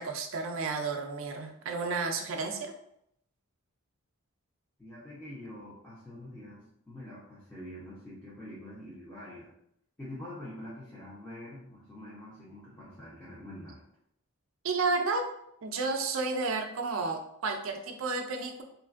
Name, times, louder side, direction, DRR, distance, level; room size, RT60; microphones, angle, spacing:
voice 1, 0.0-2.7 14.6-15.3 15.6-18.6, right 3 dB, 65° right, 4 dB, 0.4 m, -32 dB
voice 2, 4.8-9.5 10.0-13.8, left 1 dB, 10° left, -10 dB, 0.6 m, -45 dB
3.1 x 2.4 x 2.4 m, 0.74 s
head